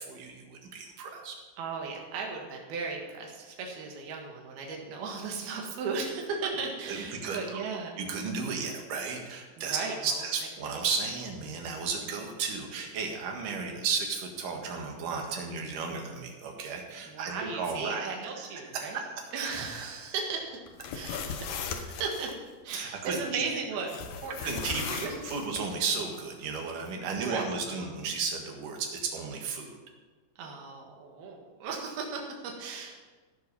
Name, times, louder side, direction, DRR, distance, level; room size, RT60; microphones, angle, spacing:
voice 1, 0.0-1.4 6.9-7.6 8.0-18.1 18.4-18.5 18.7-19.3 22.7-23.4 24.4-29.8, right 5 dB, 65° right, 2 dB, 3.1 m, -34 dB
voice 2, 1.6-7.9 9.6-10.3 12.1-12.2 17.0-19.0 19.3-20.6 20.9-22.3 22.7-23.9 24.2-25.2 27.1-27.9 30.4-33.0, right 4 dB, 80° right, 0 dB, 3.6 m, -36 dB
sound 1, 20.7-22.3 23.9-25.6, left 6 dB, 70° left, 2.0 m, -37 dB
16.0 x 6.9 x 5.5 m, 1.3 s
omnidirectional pair, 4.4 m